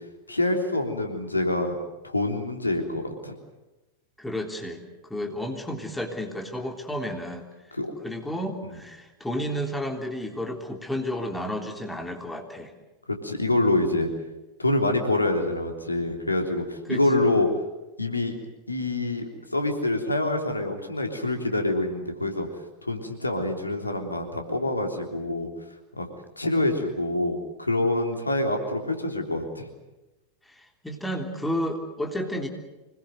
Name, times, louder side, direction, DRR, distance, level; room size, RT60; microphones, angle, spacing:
voice 1, 0.3-1.7 2.0-3.3 7.7-7.9 8.7-8.8 13.1-14.1 14.6-17.5 18.0-18.4 18.7-19.2 19.5-22.5 22.8-25.5 26.0-26.1 26.4-29.7, left 2 dB, 80° left, 4 dB, 3.4 m, -26 dB
voice 2, 4.2-4.9 5.1-7.5 8.0-12.7 16.9-17.3 30.5-32.5, equal, 5° left, 3 dB, 3.5 m, -32 dB
25.5 x 21.0 x 7.9 m, 1.1 s
figure-of-eight pair, 90°, 0 cm